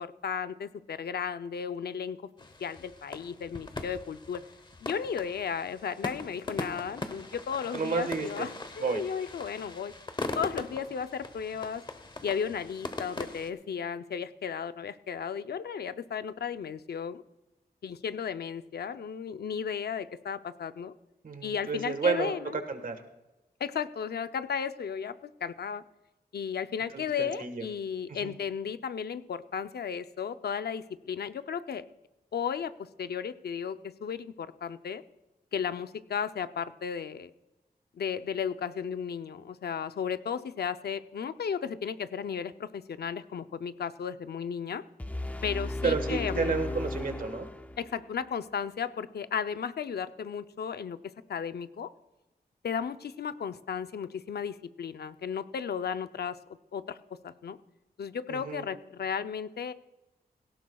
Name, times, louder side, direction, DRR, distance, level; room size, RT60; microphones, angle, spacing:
voice 1, 0.0-2.2 2.6-4.4 4.8-9.9 10.3-11.8 12.2-17.2 17.8-20.9 21.4-22.6 23.6-25.8 26.3-31.9 32.3-35.0 35.5-37.3 38.0-44.8 45.4-46.8 47.8-51.9 52.6-56.4 56.7-57.0 57.2-57.6 58.0-59.7, left 7 dB, 80° left, 11 dB, 0.6 m, -34 dB
sound 1, 2.4-13.5, left 2 dB, 30° left, 0.9 m, -40 dB
voice 2, 7.7-8.5 8.8-9.0 21.2-23.0 26.9-27.6 28.1-28.3 45.8-47.5 58.3-58.6, right 5 dB, 60° right, 7 dB, 1.5 m, -31 dB
sound 2, 45.0-48.0, left 2 dB, 10° left, 0.5 m, -35 dB
17.5 x 17.0 x 2.3 m, 0.98 s
wide cardioid pair, 150°, 16 cm